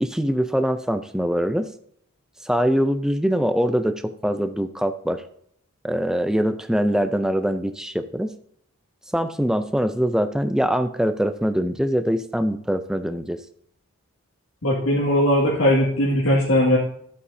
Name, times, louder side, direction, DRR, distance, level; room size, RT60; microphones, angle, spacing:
voice 1, 0.0-1.7 2.4-5.2 5.8-8.3 9.1-13.4, equal, 5° right, 9 dB, 0.5 m, -23 dB
voice 2, 14.6-16.8, left 1 dB, 85° left, -6 dB, 2.1 m, -19 dB
12.5 x 8.1 x 2.7 m, 0.67 s
head